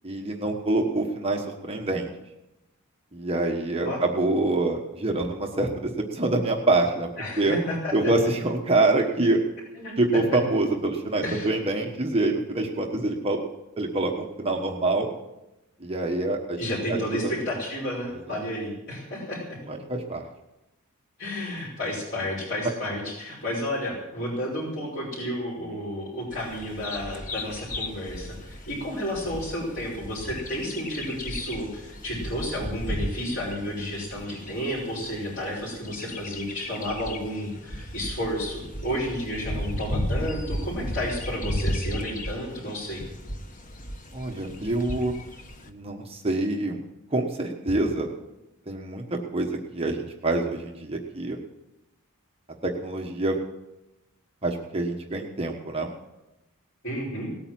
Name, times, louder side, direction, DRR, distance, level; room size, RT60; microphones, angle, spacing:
voice 1, 0.0-2.1 3.1-7.1 7.4-7.6 7.9-9.4 10.0-13.4 13.8-15.1 15.8-16.6 16.9-17.3 19.7-20.2 44.1-45.1 45.7-46.8 47.1-48.1 48.7-51.4 52.6-53.4 54.4-55.9, right 2 dB, 25° right, 1 dB, 1.3 m, -26 dB
voice 2, 7.2-8.1 9.8-10.2 11.2-11.5 16.6-19.6 21.2-43.0 56.8-57.3, equal, 55° left, -8 dB, 5.3 m, -31 dB
Bird vocalization bird call bird song, 26.3-45.7, equal, 40° left, 1.2 m, -35 dB
18.5 x 8.9 x 7.6 m, 0.95 s
head